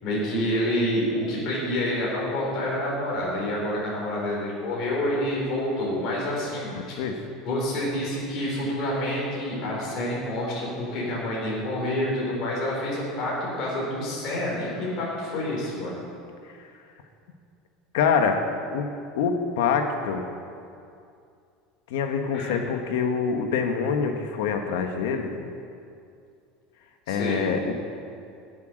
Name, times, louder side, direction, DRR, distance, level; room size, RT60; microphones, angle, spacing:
voice 1, 0.0-7.0 7.4-16.0 22.3-22.6 27.1-27.4, left 1 dB, 40° left, -5 dB, 4.3 m, -28 dB
voice 2, 6.7-7.2 17.9-18.4 18.7-18.9 19.2-20.2 21.9-25.3 27.1-27.9, left 6 dB, 85° left, 5 dB, 1.5 m, -25 dB
17.0 x 8.2 x 6.4 m, 2.4 s
cardioid pair, 175°, 0 cm